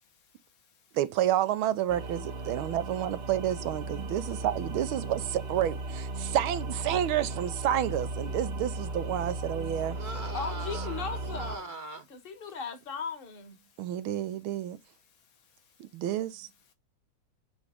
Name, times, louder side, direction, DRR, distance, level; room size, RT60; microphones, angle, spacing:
voice 1, 0.0-1.0 2.5-2.8 6.2-6.4 9.8-10.0 13.6-16.7, left 6 dB, 75° left, 2.1 m, -66 dB
voice 2, 0.9-10.0 13.8-14.8 15.8-16.5, right 11 dB, 85° right, 1.6 m, -30 dB
sound 1, 1.9-11.6, right 2 dB, 70° right, 0.5 m, -36 dB
voice 3, 9.8-12.0, right 2 dB, 35° right, 0.8 m, -41 dB
voice 4, 10.3-11.6 12.1-13.6, left 5 dB, 30° left, 1.2 m, -37 dB
8.4 x 3.1 x 5.0 m
omnidirectional pair, 2.2 m